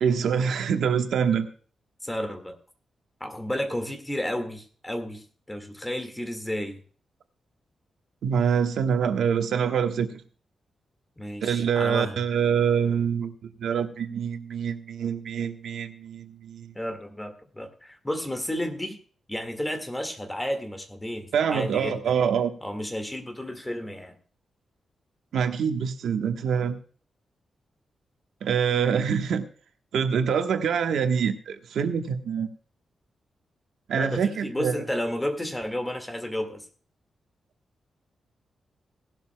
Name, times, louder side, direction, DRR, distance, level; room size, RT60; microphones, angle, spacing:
voice 1, 0.0-1.5 8.2-10.1 11.4-16.7 21.3-22.5 25.3-26.8 28.4-29.4 29.9-32.5 33.9-34.8, right 7 dB, 90° right, 7 dB, 1.3 m, -25 dB
voice 2, 2.0-2.6 3.2-6.8 11.2-12.2 16.7-19.0 19.3-22.1 22.6-24.1 33.9-36.7, left 1 dB, 10° left, 7 dB, 1.8 m, -32 dB
18.0 x 12.0 x 2.2 m, 0.42 s
wide cardioid pair, 155°, 0 cm